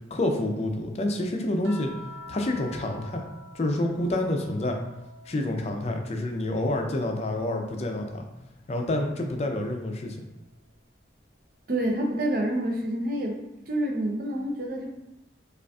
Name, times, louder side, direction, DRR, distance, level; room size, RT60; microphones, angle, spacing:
voice 1, 0.1-1.9 2.3-3.2 3.5-4.8 5.3-8.3 8.7-10.2, left 1 dB, 35° left, 3 dB, 0.4 m, -28 dB
sound 1, 1.6-6.1 6.5-8.1 9.6-9.8, left 1 dB, 85° right, 0.8 m, -47 dB
voice 2, 11.7-13.4 13.7-14.9, right 1 dB, 55° right, 1 dB, 0.6 m, -27 dB
5.0 x 2.4 x 2.3 m, 0.92 s
head